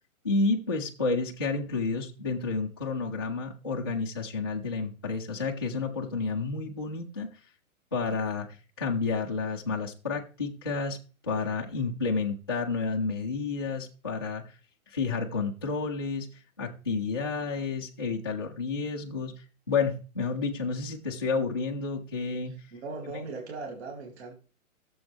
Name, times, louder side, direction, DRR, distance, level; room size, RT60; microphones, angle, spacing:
voice 1, 0.2-7.3 7.9-8.5 8.8-11.0 11.2-14.5 14.9-16.3 16.6-19.3 19.7-22.5, left 4 dB, 20° left, -3 dB, 0.5 m, -30 dB
voice 2, 22.5-24.4, right 3 dB, 50° right, 1 dB, 2.4 m, -39 dB
16.0 x 7.0 x 3.3 m, 0.37 s
hypercardioid pair, 165°, 43 cm